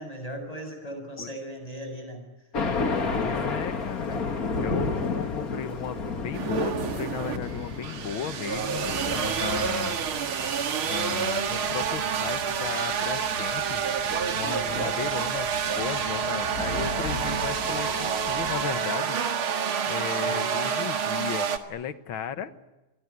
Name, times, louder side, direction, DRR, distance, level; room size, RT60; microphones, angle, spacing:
voice 1, 0.0-2.2 2.9-3.5 14.7-14.9 20.1-20.5 22.4-22.5, equal, 15° left, 6 dB, 6.9 m, -38 dB
Thunder, 2.5-18.7, left 4 dB, 45° left, 2.5 m, -34 dB
voice 2, 3.2-4.2 4.6-10.0 10.8-13.8 14.3-15.5 15.8-19.2 19.9-22.5, left 8 dB, 70° left, 12 dB, 2.1 m, -35 dB
sound 1, 6.3-21.6, right 7 dB, 80° right, 2.5 m, -28 dB
28.0 x 21.5 x 9.8 m, 1.1 s
omnidirectional pair, 2.3 m